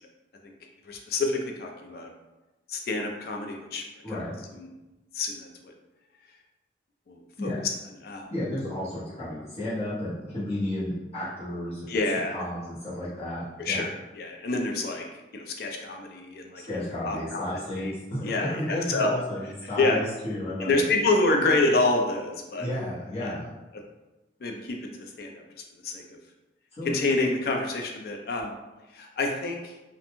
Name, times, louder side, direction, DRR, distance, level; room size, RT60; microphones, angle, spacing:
voice 1, 0.9-2.1 2.7-3.8 4.5-4.7 5.1-5.7 7.1-7.5 8.0-8.3 11.9-12.4 13.6-15.0 15.3-17.5 17.8-17.9 18.2-19.1 19.8-20.0 20.6-22.7 23.2-23.4 23.7-23.8 24.4-25.4 25.8-26.0 26.8-28.5 28.9-29.7, left 2 dB, 60° left, 2 dB, 0.4 m, -27 dB
voice 2, 8.3-11.9 12.3-13.8 16.6-20.8 22.6-23.5 26.8-26.9, left 1 dB, 35° left, -11 dB, 1.0 m, -32 dB
2.5 x 2.1 x 2.9 m, 1.0 s
head